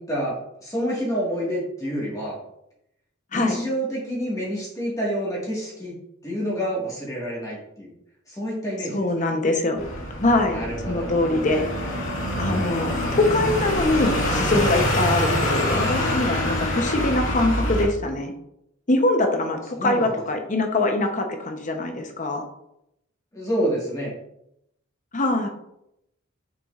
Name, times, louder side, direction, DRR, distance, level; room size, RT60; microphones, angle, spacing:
voice 1, 0.0-2.4 3.3-5.9 6.2-7.9 8.3-9.0 10.5-11.1 11.5-11.6 19.7-20.1 23.3-24.1, equal, 15° left, -6 dB, 1.7 m, -28 dB
voice 2, 8.9-9.8 10.2-10.6 10.9-11.7 12.4-18.3 18.9-22.4 25.1-25.5, left 2 dB, 35° left, 4 dB, 0.9 m, -23 dB
sound 1, 9.8-17.9, left 1 dB, 65° left, 2.3 m, -25 dB
6.7 x 6.3 x 2.5 m, 0.81 s
head